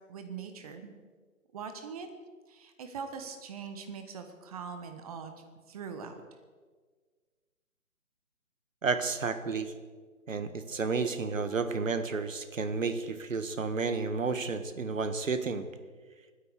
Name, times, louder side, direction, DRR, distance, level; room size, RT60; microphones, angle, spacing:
voice 1, 0.1-1.0 1.5-2.1 2.5-6.2, right 6 dB, 25° right, 7 dB, 1.3 m, -42 dB
voice 2, 8.8-9.7 10.3-15.6, right 4 dB, 60° right, 10 dB, 1.6 m, -31 dB
24.5 x 9.8 x 4.8 m, 1.5 s
figure-of-eight pair, 140°, 43 cm